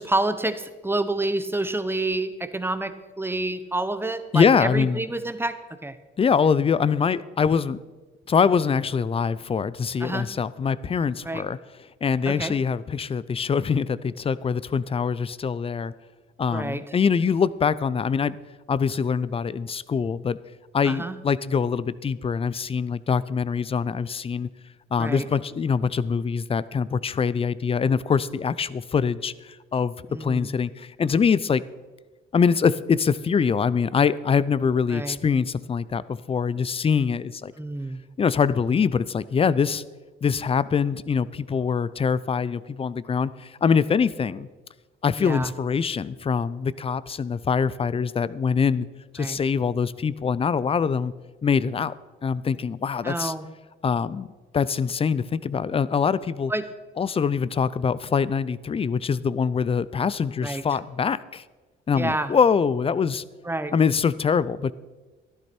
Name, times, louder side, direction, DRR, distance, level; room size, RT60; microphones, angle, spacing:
voice 1, 0.0-6.0 10.0-10.3 11.2-11.4 12.3-12.5 16.5-16.8 20.8-21.2 25.0-25.2 30.1-30.5 34.9-35.2 37.6-38.0 45.2-45.5 49.2-49.4 53.0-53.5 56.5-56.6 60.4-60.6 61.9-62.3 63.4-63.7, right 2 dB, 10° right, 11 dB, 0.8 m, -28 dB
voice 2, 4.3-5.0 6.2-7.8 8.3-11.6 12.0-15.9 16.4-18.4 18.7-20.4 20.7-24.5 24.9-29.9 30.2-31.6 32.3-37.5 38.2-39.8 40.2-44.5 45.0-48.9 49.1-51.1 51.4-51.9 52.2-53.3 53.8-54.3 54.5-56.5 57.0-61.4 61.9-63.2 63.7-64.7, left 6 dB, 30° left, 18 dB, 0.5 m, -24 dB
13.5 x 11.5 x 4.4 m, 1.3 s
cardioid pair, 90°, 20 cm